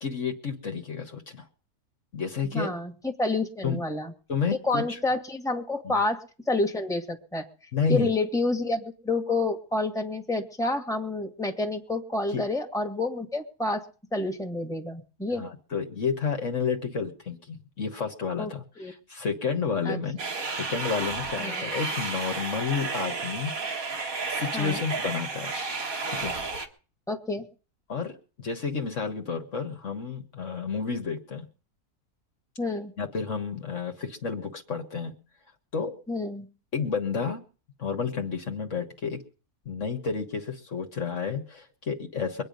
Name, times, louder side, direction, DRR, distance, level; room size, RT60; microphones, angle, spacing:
voice 1, 0.0-1.5 2.1-2.7 3.6-3.8 4.3-5.0 5.8-6.0 7.7-8.1 12.3-12.4 15.3-20.2 20.6-25.5 26.1-26.3 27.9-31.5 33.0-35.1 35.7-36.0 36.7-37.4 37.8-39.2 39.7-42.4, left 5 dB, 55° left, 4 dB, 1.7 m, -31 dB
voice 2, 2.5-4.1 4.6-7.5 7.9-13.8 14.1-15.4 18.4-18.9 19.9-20.0 21.4-21.6 24.5-24.8 27.1-27.5 32.6-32.9 36.1-36.5, left 2 dB, ahead, 4 dB, 1.8 m, -29 dB
sound 1, 20.2-26.7, right 4 dB, 65° right, 2.2 m, -32 dB
23.5 x 9.1 x 5.3 m, 0.38 s
omnidirectional pair, 1.6 m